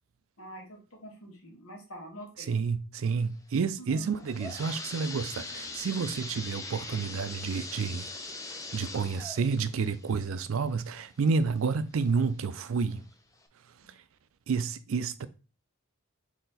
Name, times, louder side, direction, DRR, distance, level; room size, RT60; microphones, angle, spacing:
voice 1, 0.4-2.5 3.8-4.1 13.8-13.9, right 1 dB, 90° left, 1.4 m, -45 dB
voice 2, 2.5-8.1 8.7-13.0 14.5-15.3, right 5 dB, 70° right, 0.4 m, -30 dB
sound 1, 4.0-11.6 12.1-12.2 12.9-13.0 13.4-13.5, left 3 dB, 15° left, 0.4 m, -42 dB
4.0 x 2.9 x 4.0 m
head